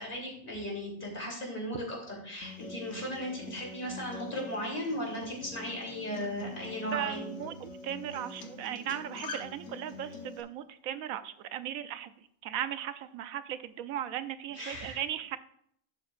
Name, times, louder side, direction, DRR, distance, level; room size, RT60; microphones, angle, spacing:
voice 1, 0.0-7.3 14.5-15.0, equal, 35° left, -2 dB, 3.2 m, -36 dB
Acoustic guitar, 2.4-10.4, left 3 dB, 60° left, 1.2 m, -45 dB
voice 2, 6.9-12.1 12.4-15.4, right 11 dB, 80° right, 12 dB, 1.0 m, -37 dB
11.5 x 7.2 x 2.4 m, 0.68 s
omnidirectional pair, 1.5 m